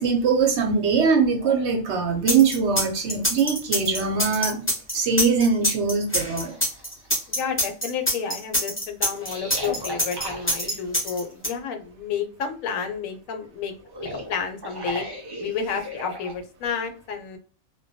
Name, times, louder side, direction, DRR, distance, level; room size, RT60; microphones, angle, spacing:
voice 1, 0.0-4.6 4.9-6.6, right 5 dB, 65° right, 3 dB, 0.8 m, -22 dB
sound 1, 1.4-1.6 3.4-3.5 4.0-5.0 5.6-5.7 6.3-7.4 9.2-11.0 13.8-16.4, right 1 dB, 40° right, 0.3 m, -37 dB
sound 2, 2.3-11.5, equal, 15° left, 0.6 m, -24 dB
voice 2, 7.3-15.0 15.4-17.4, left 6 dB, 80° left, 6 dB, 1.0 m, -31 dB
2.2 x 2.2 x 2.6 m, 0.39 s
omnidirectional pair, 1.4 m